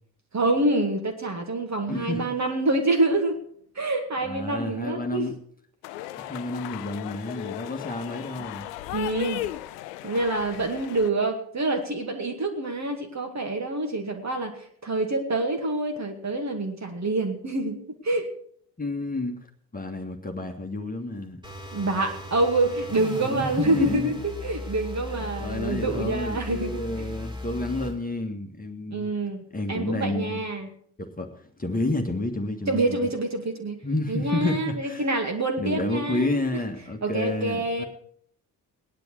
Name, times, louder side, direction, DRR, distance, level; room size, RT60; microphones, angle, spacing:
voice 1, 0.3-3.4 3.8-5.3 8.4-8.5 8.9-9.4 10.0-18.3 21.7-27.0 28.9-30.7 32.7-33.8 34.1-36.4 37.0-37.8, right 2 dB, 35° right, 4 dB, 2.2 m, -26 dB
voice 2, 1.9-2.3 4.2-5.3 6.2-8.7 18.8-19.4 19.7-21.4 23.2-24.2 25.3-29.1 29.5-30.4 31.0-33.0 33.8-35.0 35.6-37.8, left 2 dB, 15° left, 2 dB, 1.8 m, -30 dB
sound 1, 5.8-11.1, left 14 dB, 70° left, 0.7 m, -36 dB
sound 2, 21.4-28.0, left 1 dB, 10° right, 2.7 m, -37 dB
17.5 x 10.5 x 4.7 m, 0.62 s
figure-of-eight pair, 40°, 49 cm